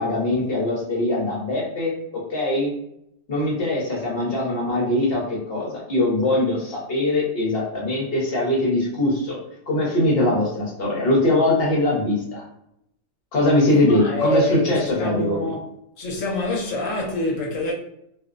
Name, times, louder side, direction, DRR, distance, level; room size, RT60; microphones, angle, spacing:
voice 1, 0.0-1.9 2.3-2.7 3.3-9.4 9.7-12.4 13.3-15.5, left 1 dB, 55° left, 1.0 m, -22 dB
voice 2, 13.7-15.6 16.0-17.7, left 1 dB, 80° left, 1.1 m, -26 dB
2.6 x 2.0 x 2.4 m
omnidirectional pair, 1.3 m